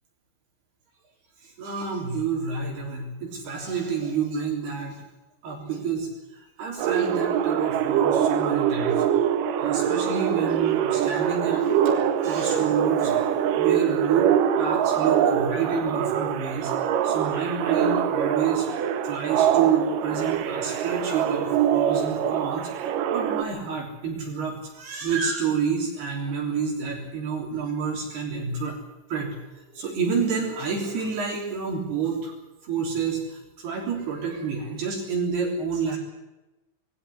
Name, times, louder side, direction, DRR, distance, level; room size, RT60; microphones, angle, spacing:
voice 1, 1.4-5.0 5.4-6.1 6.6-9.1 9.6-11.7 12.2-13.2 13.6-16.7 17.0-18.7 19.0-28.8 29.1-32.3 32.6-36.0, right 6 dB, 55° right, 1 dB, 5.2 m, -28 dB
sound 1, 6.8-23.4, right 9 dB, 80° right, 1.9 m, -24 dB
20.5 x 17.5 x 9.7 m, 1.0 s
omnidirectional pair, 5.8 m